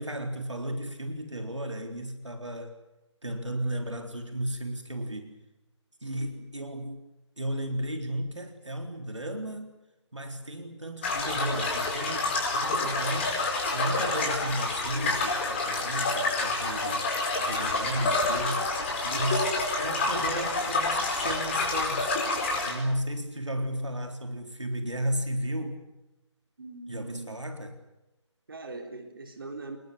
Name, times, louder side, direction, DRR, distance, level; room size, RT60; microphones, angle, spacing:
voice 1, 0.0-2.7 3.2-5.4 6.0-7.0 7.4-9.8 10.1-13.4 13.7-17.2 17.4-18.7 19.0-25.8 26.9-27.8, right 1 dB, 75° right, 5 dB, 3.8 m, -34 dB
sound 1, 11.0-22.7, left 3 dB, 25° left, 5.0 m, -28 dB
voice 2, 26.6-27.3 28.5-29.8, right 3 dB, 50° right, 4 dB, 3.8 m, -41 dB
27.0 x 21.0 x 8.1 m, 0.96 s
figure-of-eight pair, 155°, 16 cm